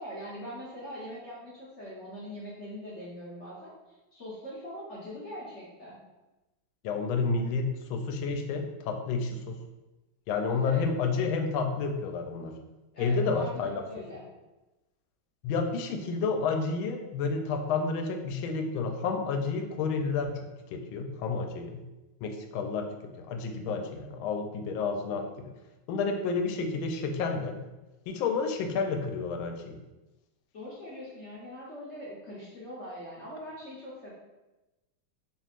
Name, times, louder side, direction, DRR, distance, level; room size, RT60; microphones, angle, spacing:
voice 1, 0.0-6.0 10.4-10.8 12.9-14.3 30.5-34.1, equal, 60° left, -7 dB, 0.7 m, -42 dB
voice 2, 6.8-9.6 10.3-12.5 13.0-13.8 15.4-21.8 22.2-22.9 23.2-25.5 25.9-27.6 28.1-29.8, left 4 dB, 80° left, 4 dB, 1.3 m, -30 dB
4.5 x 3.3 x 2.4 m, 1.1 s
omnidirectional pair, 2.3 m